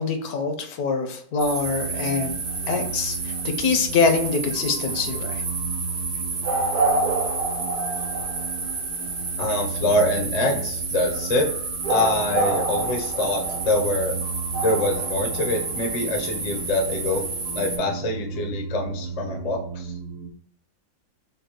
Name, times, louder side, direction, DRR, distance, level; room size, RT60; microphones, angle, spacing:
voice 1, 0.0-2.4 2.7-5.4, left 4 dB, 75° left, 6 dB, 1.1 m, -24 dB
sound 1, 1.4-17.8, right 3 dB, 85° right, 1.9 m, -28 dB
sound 2, 1.6-20.3, right 5 dB, 65° right, 1.0 m, -35 dB
voice 2, 9.4-11.5 11.9-14.2 14.6-17.3 17.5-19.9, left 2 dB, 50° left, 2 dB, 0.4 m, -25 dB
5.2 x 2.1 x 2.9 m, 0.63 s
omnidirectional pair, 1.7 m